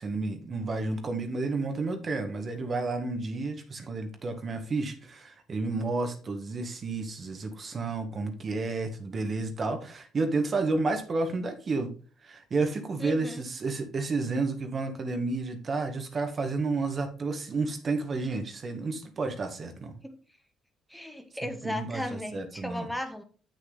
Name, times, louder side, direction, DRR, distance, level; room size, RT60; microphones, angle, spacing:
voice 1, 0.0-11.9 12.2-20.0 21.6-22.8, right 3 dB, 45° right, 5 dB, 1.8 m, -31 dB
voice 2, 13.0-13.5 20.0-20.2 20.9-23.2, left 1 dB, ahead, 5 dB, 1.6 m, -36 dB
8.0 x 6.6 x 4.0 m, 0.39 s
supercardioid pair, 65°, 0 cm